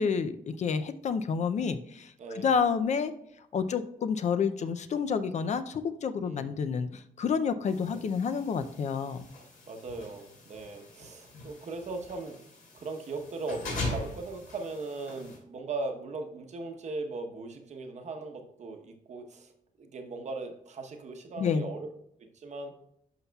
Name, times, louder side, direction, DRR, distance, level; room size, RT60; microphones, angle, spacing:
voice 1, 0.0-3.1 3.5-9.3 21.4-21.7, left 6 dB, 50° left, 10 dB, 0.4 m, -29 dB
voice 2, 2.2-2.5 6.2-6.7 7.9-8.0 9.7-12.4 12.7-19.5 19.8-21.9 22.2-22.7, right 3 dB, 50° right, 4 dB, 0.9 m, -39 dB
sound 1, 7.6-15.4, left 2 dB, 65° left, 3.0 m, -41 dB
11.5 x 5.6 x 2.3 m, 0.75 s
wide cardioid pair, 155°, 15 cm